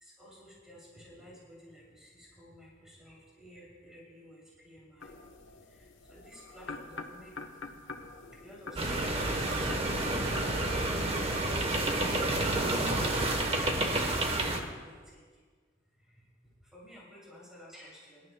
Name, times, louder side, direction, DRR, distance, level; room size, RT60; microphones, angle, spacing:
voice 1, 0.0-5.1 6.1-7.3 8.1-10.4 13.9-15.2 16.7-18.2, equal, 5° right, -6 dB, 2.8 m, -53 dB
sound 1, 5.0-14.7, left 3 dB, 85° left, 1.0 m, -48 dB
sound 2, 8.8-14.6, right 2 dB, 30° right, 1.0 m, -29 dB
24.0 x 11.5 x 2.2 m, 1.5 s
head